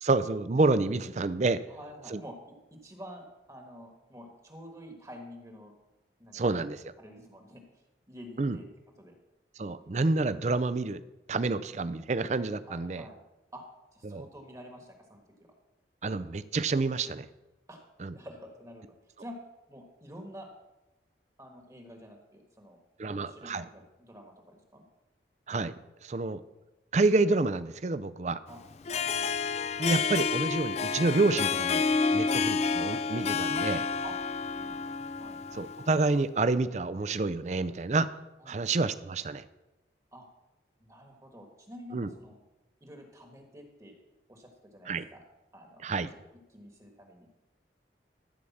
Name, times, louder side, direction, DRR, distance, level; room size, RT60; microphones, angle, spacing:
voice 1, 0.0-1.6 2.1-2.2 6.3-6.8 8.4-8.6 9.6-11.0 11.3-13.0 14.0-14.3 16.0-17.3 18.0-18.1 23.0-23.7 25.5-25.7 26.0-26.4 26.9-28.4 29.8-33.9 35.5-38.1 38.5-39.4 41.9-42.1 44.9-45.0 45.8-46.1, right 3 dB, 40° right, 14 dB, 0.5 m, -28 dB
voice 2, 1.7-5.7 6.2-6.7 7.0-7.6 8.1-8.7 9.0-9.1 12.6-13.2 13.5-13.6 13.9-15.2 17.7-17.9 18.1-18.9 19.2-19.4 19.7-20.5 21.4-22.8 23.0-24.8 28.5-28.6 28.9-29.3 34.0-34.2 34.6-35.4 38.4-38.6 40.1-40.3 40.8-42.4 42.8-44.0 44.3-45.2 45.5-45.9 46.5-47.3, equal, 20° right, 3 dB, 1.3 m, -48 dB
Harp, 28.7-36.1, left 5 dB, 35° left, 0.4 m, -29 dB
14.0 x 4.9 x 7.2 m, 1.0 s
head